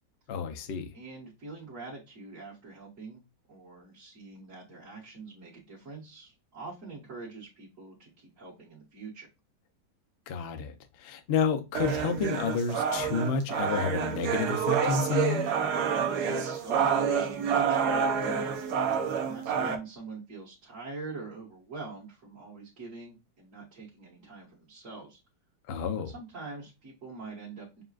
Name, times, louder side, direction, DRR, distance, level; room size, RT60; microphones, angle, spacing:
voice 1, 0.3-0.9 10.3-10.7 11.0-15.5 25.7-26.1, left 5 dB, 85° left, 0.5 m, -30 dB
voice 2, 0.9-9.3 16.0-18.6 19.2-25.2 26.1-27.8, right 3 dB, 45° right, 1.9 m, -44 dB
sound 1, 11.8-19.8, right 7 dB, 65° right, 1.2 m, -28 dB
6.9 x 2.4 x 2.4 m
omnidirectional pair, 2.0 m